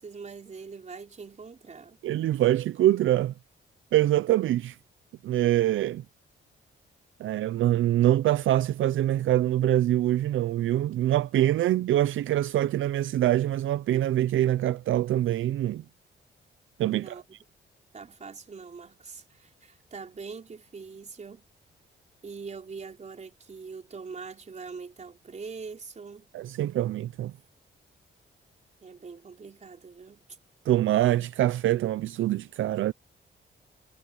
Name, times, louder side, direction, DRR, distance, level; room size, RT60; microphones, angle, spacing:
voice 1, 0.0-2.0 16.9-17.2 17.9-21.4 22.2-26.3 28.8-30.2, right 5 dB, 35° right, 4.1 m, -43 dB
voice 2, 2.0-3.3 3.9-4.8 5.2-6.0 7.2-15.8 16.8-17.1 26.3-27.3 30.7-32.9, right 13 dB, 80° right, 0.5 m, -24 dB
cardioid pair, 125°, 20 cm